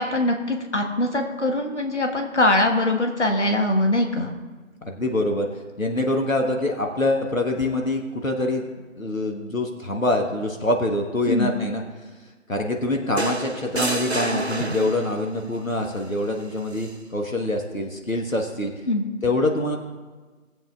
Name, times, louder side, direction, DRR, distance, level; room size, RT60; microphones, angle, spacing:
voice 1, 0.0-4.3 11.3-11.5 18.9-19.1, left 1 dB, 55° left, 3 dB, 1.3 m, -22 dB
voice 2, 4.8-5.5 5.8-8.7 9.0-11.8 12.5-18.7 19.2-19.8, left 1 dB, 75° left, 2 dB, 1.3 m, -25 dB
sound 1, 13.2-15.3 16.7-16.9, right 2 dB, 50° right, 0.5 m, -28 dB
18.5 x 7.7 x 2.4 m, 1.3 s
figure-of-eight pair, 170°, 41 cm